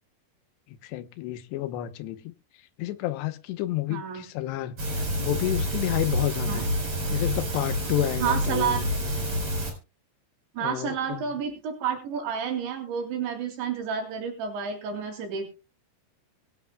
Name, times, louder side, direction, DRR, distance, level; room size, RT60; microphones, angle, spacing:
voice 1, 0.8-2.3 2.8-6.7 7.1-9.1 10.6-11.3, left 15 dB, 80° left, 3.1 m, -30 dB
voice 2, 3.9-4.2 6.5-6.6 8.2-8.8 10.5-15.5, right 7 dB, 90° right, 5.2 m, -30 dB
sound 1, 4.8-9.7, equal, 30° right, 5.4 m, -28 dB
24.5 x 8.9 x 2.3 m
omnidirectional pair, 5.0 m